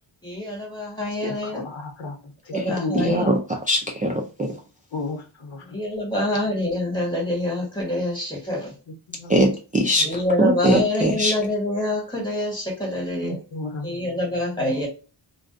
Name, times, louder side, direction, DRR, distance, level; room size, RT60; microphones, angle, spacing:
voice 1, 0.2-1.6 2.5-3.3 5.6-8.7 10.0-13.4 13.8-14.9, left 1 dB, 10° left, -2 dB, 1.4 m, -26 dB
voice 2, 1.2-3.4 4.9-5.8 6.1-6.2 9.2-9.3 10.0-10.1 13.2-14.1 14.5-14.9, left 2 dB, 80° left, 3 dB, 0.9 m, -33 dB
voice 3, 2.9-3.4 3.7-4.6 9.3-10.1 10.4-11.3, equal, 20° right, 0 dB, 0.3 m, -21 dB
2.4 x 2.2 x 2.5 m, 0.35 s
wide cardioid pair, 90°, 46 cm